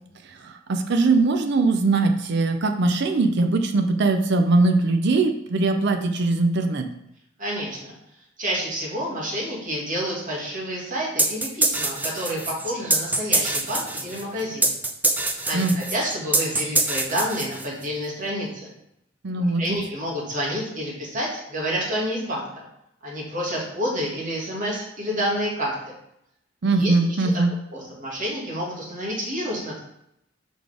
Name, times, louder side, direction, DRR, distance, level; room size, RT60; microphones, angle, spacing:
voice 1, 0.3-6.9 15.5-15.7 19.2-19.8 26.6-27.5, right 3 dB, 60° right, 6 dB, 0.5 m, -21 dB
voice 2, 7.4-7.9 8.4-14.7 15.5-18.7 19.4-22.7 23.0-25.7 26.6-27.4 27.7-29.8, equal, 40° right, -4 dB, 2.0 m, -29 dB
sound 1, 11.2-17.9, right 2 dB, 10° right, 0.5 m, -24 dB
5.1 x 4.0 x 5.0 m, 0.78 s
head